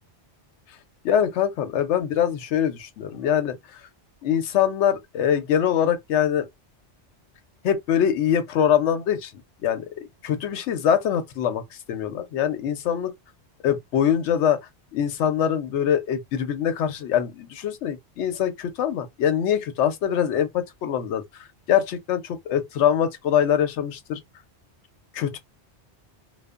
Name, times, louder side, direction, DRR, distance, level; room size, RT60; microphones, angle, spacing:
voice 1, 1.0-3.6 4.2-6.5 7.6-9.3 9.6-9.9 10.2-11.6 11.9-13.1 13.6-14.6 14.9-21.2 21.7-24.2 25.1-25.4, left 9 dB, 90° left, 0.9 m, -23 dB
2.6 x 2.3 x 2.3 m
omnidirectional pair, 1.1 m